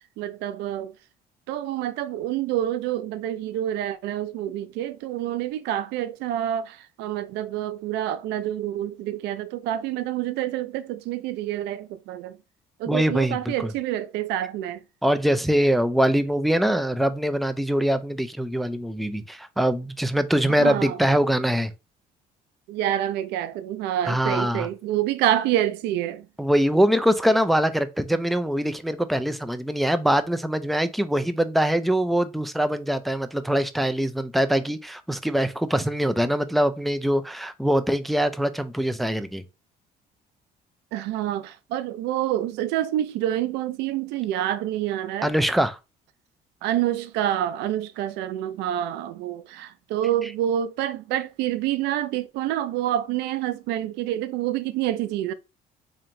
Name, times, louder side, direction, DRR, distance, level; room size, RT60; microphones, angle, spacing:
voice 1, 0.2-0.9 1.5-12.4 12.8-14.8 20.5-21.0 22.7-26.3 40.9-45.3 46.6-55.3, right 12 dB, 90° right, 0.4 m, -27 dB
voice 2, 12.9-13.7 15.0-21.7 24.1-24.7 26.4-39.4 45.2-45.8, equal, ahead, 0.3 m, -23 dB
4.3 x 2.8 x 2.6 m
cardioid pair, 110°, 17 cm